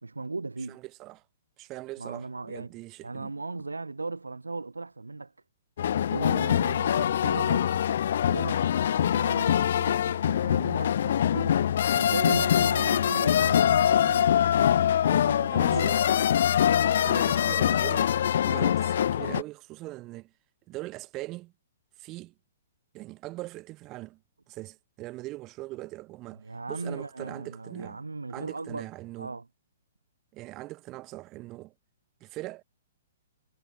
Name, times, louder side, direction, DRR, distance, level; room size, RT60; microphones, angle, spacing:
voice 1, 0.0-0.8 2.0-2.7 3.0-5.3 6.1-7.8 8.3-11.6 12.0-14.3 15.1-15.9 26.4-28.9 29.2-29.5, right 3 dB, 85° right, 3.5 m, -37 dB
voice 2, 0.7-1.2 1.6-3.3 7.0-7.1 15.5-16.2 17.0-18.1 18.4-20.3 20.7-21.5 22.0-22.3 22.9-24.2 24.5-28.0 28.3-29.4 30.3-31.7 32.2-32.6, right 19 dB, 30° right, 7.0 m, -41 dB
sound 1, 5.8-19.4, left 9 dB, 60° left, 1.4 m, -24 dB
figure-of-eight pair, 120°, 0 cm